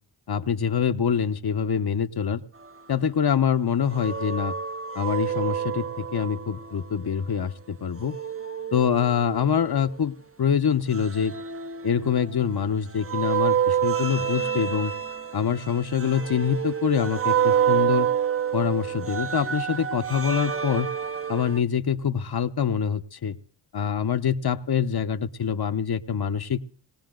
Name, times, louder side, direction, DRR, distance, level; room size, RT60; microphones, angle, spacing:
voice 1, 0.3-2.4 2.9-4.5 4.9-8.2 8.7-11.3 11.8-14.9 15.3-18.1 18.5-20.9 21.3-23.4 23.7-26.6, left 7 dB, 60° left, 9 dB, 1.1 m, -25 dB
sound 1, 3.9-6.8 8.0-9.8 10.9-12.5 13.0-21.6, right 8 dB, 30° right, 0.7 m, -28 dB
20.5 x 17.5 x 3.9 m, 0.38 s
cardioid pair, 60°, 43 cm